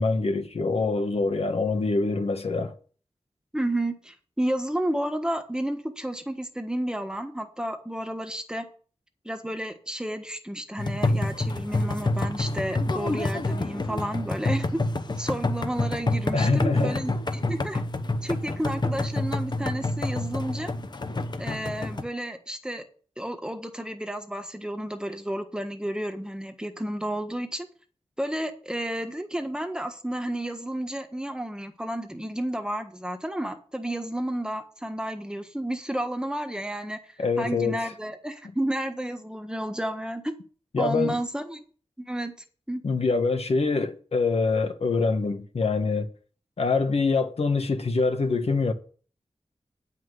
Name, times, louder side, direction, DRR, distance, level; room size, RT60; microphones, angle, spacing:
voice 1, 0.0-2.7 16.3-17.0 37.2-37.9 40.7-41.2 42.8-46.1 46.6-48.7, left 3 dB, 70° left, 1.4 m, -25 dB
voice 2, 3.5-8.7 9.2-14.8 15.2-17.8 18.2-20.7 21.4-22.8 23.2-27.7 28.2-40.3 40.8-41.6 42.0-42.3 42.7-42.8, right 1 dB, 5° right, 1.4 m, -31 dB
sound 1, 10.8-22.0, left 2 dB, 40° left, 1.0 m, -28 dB
9.5 x 5.9 x 7.9 m
wide cardioid pair, 105°, 11 cm